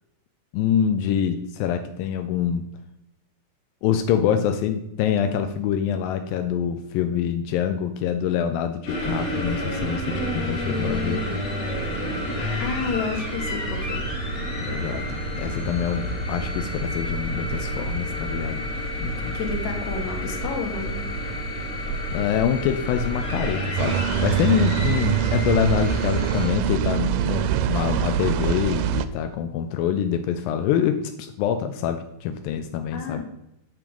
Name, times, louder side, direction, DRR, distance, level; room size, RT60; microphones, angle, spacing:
voice 1, 0.5-2.6 3.8-11.2 14.6-18.7 19.0-19.4 22.1-33.2, left 8 dB, 85° left, 7 dB, 2.4 m, -25 dB
sound 1, 8.9-26.5, equal, 30° left, 1.6 m, -29 dB
voice 2, 12.6-14.1 19.3-21.1 32.9-33.2, left 5 dB, 65° left, 3 dB, 2.6 m, -30 dB
sound 2, 23.8-29.1, right 10 dB, 80° right, 2.1 m, -24 dB
8.3 x 6.0 x 5.3 m, 0.85 s
omnidirectional pair, 4.0 m